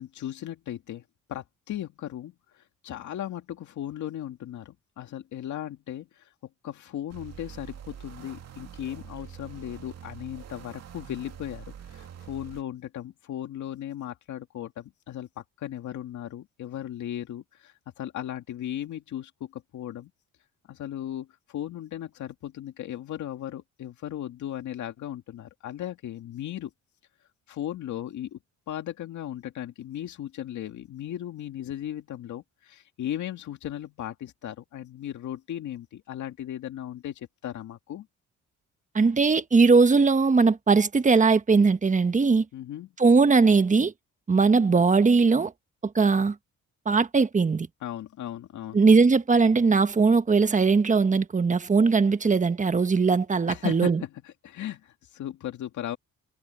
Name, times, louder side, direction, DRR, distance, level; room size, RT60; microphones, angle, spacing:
voice 1, 0.0-6.3 6.6-20.1 20.7-26.7 27.5-28.4 28.7-38.1 42.5-42.9 47.8-48.8 53.5-56.0, left 11 dB, 75° left, 2.1 m, -37 dB
sound 1, 7.1-12.6, right 8 dB, 55° right, 2.3 m, -45 dB
voice 2, 38.9-42.4 43.0-43.9 44.3-45.5 45.8-46.3 46.9-47.7 48.7-54.0, right 4 dB, 25° right, 1.3 m, -20 dB
cardioid pair, 90°, 30 cm